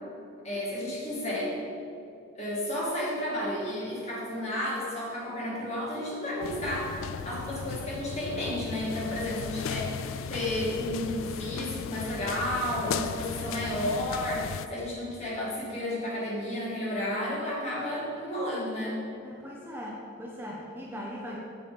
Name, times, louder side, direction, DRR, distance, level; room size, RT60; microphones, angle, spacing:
voice 1, 0.4-1.5 2.4-19.0, left 1 dB, 35° left, -5 dB, 2.0 m, -32 dB
sound 1, 6.4-14.7, left 7 dB, 90° left, 0.3 m, -36 dB
voice 2, 19.2-21.4, equal, 10° right, -3 dB, 0.7 m, -39 dB
7.0 x 6.9 x 5.1 m, 2.8 s
head